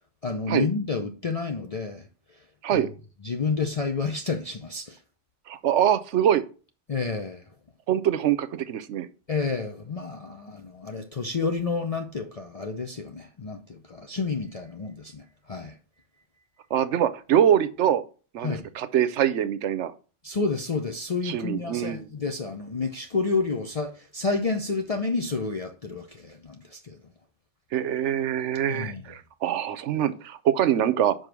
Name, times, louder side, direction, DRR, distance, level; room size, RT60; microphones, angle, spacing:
voice 1, 0.2-2.1 2.7-2.9 3.2-5.0 6.9-7.4 9.3-15.8 18.4-18.7 20.2-27.0 28.7-29.0, left 4 dB, 40° left, 0.7 m, -30 dB
voice 2, 5.5-6.4 7.9-9.1 16.7-18.0 18.3-19.9 21.2-22.1 27.7-31.2, right 10 dB, 80° right, 1.0 m, -24 dB
6.1 x 5.2 x 6.1 m
omnidirectional pair, 1.2 m